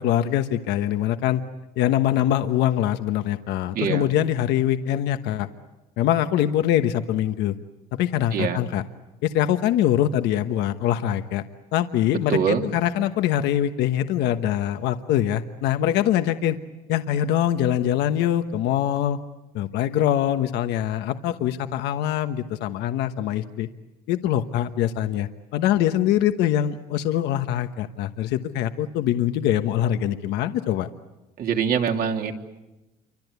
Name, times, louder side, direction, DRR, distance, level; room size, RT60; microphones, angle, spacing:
voice 1, 0.0-1.4 1.8-5.5 6.0-7.5 7.9-8.8 9.2-11.4 11.7-16.6 16.9-19.2 19.5-23.7 24.1-30.9, left 11 dB, 85° left, 8 dB, 1.2 m, -23 dB
voice 2, 3.7-4.1 8.3-8.6 12.3-12.6 31.4-32.3, right 7 dB, 60° right, 4 dB, 3.0 m, -23 dB
28.5 x 25.0 x 8.2 m, 1.1 s
cardioid pair, 110°, 17 cm